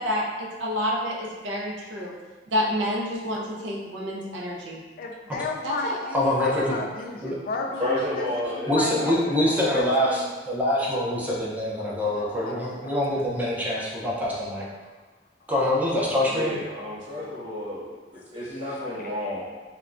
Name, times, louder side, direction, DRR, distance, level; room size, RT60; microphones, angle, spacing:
voice 1, 0.0-2.1 2.5-4.8 5.6-6.0, equal, 80° right, -2 dB, 0.4 m, -29 dB
voice 2, 5.0-10.3 10.6-10.8 12.0-13.2 17.0-17.5 18.8-18.9, left 3 dB, 50° left, 1 dB, 0.3 m, -35 dB
voice 3, 6.1-6.7 7.2-7.4 8.7-14.7 15.5-16.6, left 1 dB, 10° right, -6 dB, 0.5 m, -25 dB
voice 4, 7.8-10.1 16.2-19.4, left 1 dB, 35° right, -14 dB, 1.2 m, -32 dB
3.2 x 2.1 x 2.5 m, 1.3 s
head